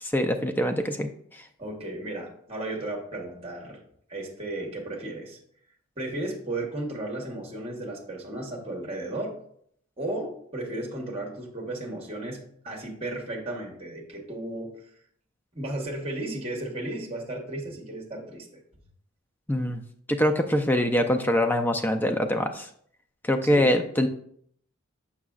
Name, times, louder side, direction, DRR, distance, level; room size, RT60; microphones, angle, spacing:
voice 1, 0.0-1.4 19.5-19.8 20.1-22.7 23.2-24.1, equal, 10° left, 6 dB, 0.4 m, -24 dB
voice 2, 1.6-3.8 4.1-5.4 6.0-9.4 10.0-14.7 15.5-18.5 23.4-23.7, right 1 dB, 25° right, 0 dB, 1.2 m, -34 dB
6.5 x 6.0 x 2.4 m, 0.65 s
head